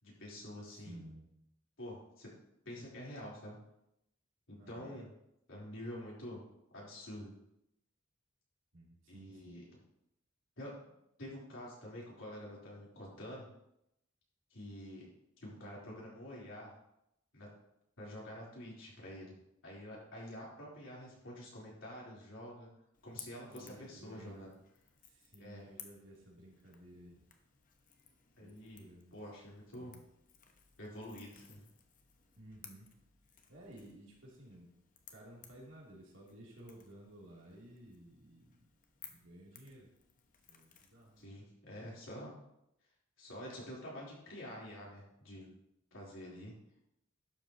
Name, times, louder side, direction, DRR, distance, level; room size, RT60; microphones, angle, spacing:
voice 1, 0.0-1.1 1.8-2.3 2.6-3.6 4.5-5.1 5.5-6.4 6.7-7.3 9.1-9.6 10.6-10.7 11.2-13.5 14.5-15.1 15.4-16.7 17.3-17.5 18.0-19.3 19.6-22.7 23.0-24.5 25.4-25.7 28.4-28.8 29.1-29.9 30.8-31.6 41.2-42.3 43.2-45.5 45.9-46.5, equal, 70° left, -5 dB, 3.8 m, -47 dB
voice 2, 0.8-1.3 4.6-5.0 8.7-9.6 23.5-24.5 25.1-27.2 28.4-29.1 29.7-30.1 32.4-32.9 33.5-34.7 35.1-38.6 39.0-39.9 40.5-41.3 45.9-46.5, right 1 dB, 75° right, -4 dB, 3.1 m, -55 dB
Crackle / Crack, 22.9-41.3, left 8 dB, 45° left, 1.0 m, -59 dB
11.5 x 7.6 x 3.0 m, 0.81 s
head